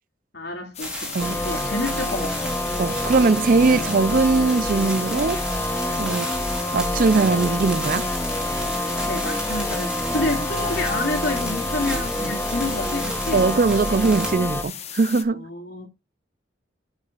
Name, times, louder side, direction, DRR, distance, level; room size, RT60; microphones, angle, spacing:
voice 1, 0.3-2.5 6.1-6.3 9.0-13.5 15.3-15.9, left 2 dB, 65° left, 2.4 m, -29 dB
sound 1, 0.7-15.2, left 9 dB, 35° left, 1.2 m, -37 dB
sound 2, 0.8-14.3, right 1 dB, 5° right, 3.8 m, -34 dB
sound 3, 1.2-14.6, left 1 dB, 10° left, 0.7 m, -27 dB
voice 2, 2.8-5.4 6.0-6.3 6.7-8.1 13.3-15.5, right 3 dB, 50° right, 0.5 m, -20 dB
12.0 x 6.4 x 2.5 m
head